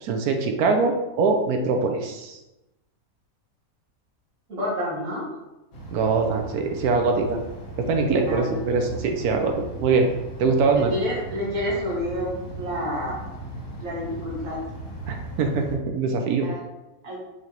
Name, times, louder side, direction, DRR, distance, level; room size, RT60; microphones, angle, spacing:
voice 1, 0.0-2.4 5.9-7.4 7.8-9.5 9.8-10.1 10.4-10.9 15.1-16.5, right 4 dB, 80° right, 4 dB, 1.1 m, -23 dB
voice 2, 4.5-5.3 8.3-8.6 10.9-13.2 13.8-14.6 16.4-16.6 17.0-17.2, left 1 dB, 60° right, -5 dB, 1.8 m, -29 dB
sound 1, 5.7-15.8, right 1 dB, 60° left, 1.2 m, -38 dB
4.7 x 3.3 x 2.9 m, 0.98 s
omnidirectional pair, 1.6 m